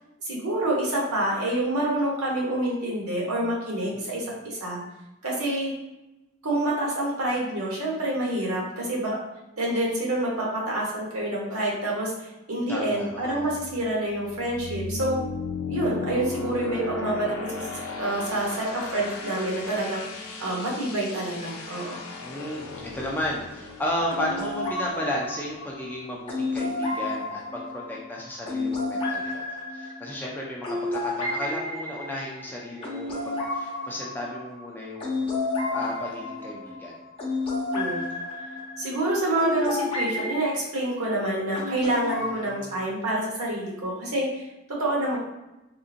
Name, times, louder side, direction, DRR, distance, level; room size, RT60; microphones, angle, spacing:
voice 1, 0.2-4.8 5.2-5.7 6.4-9.2 9.6-15.2 15.7-17.6 18.0-20.0 20.4-22.1 37.7-38.0 38.8-44.4 44.8-45.2, right 1 dB, 80° right, -3 dB, 1.1 m, -27 dB
voice 2, 3.9-4.2 12.7-13.6 22.2-29.4 29.7-35.3 35.7-36.9 42.3-42.8, left 1 dB, 10° left, -3 dB, 0.4 m, -34 dB
sound 1, 13.1-25.8, left 4 dB, 75° left, 0.5 m, -36 dB
sound 2, 24.1-40.5 41.5-42.3, left 2 dB, 25° left, 0.8 m, -31 dB
3.7 x 2.6 x 2.5 m, 0.97 s
head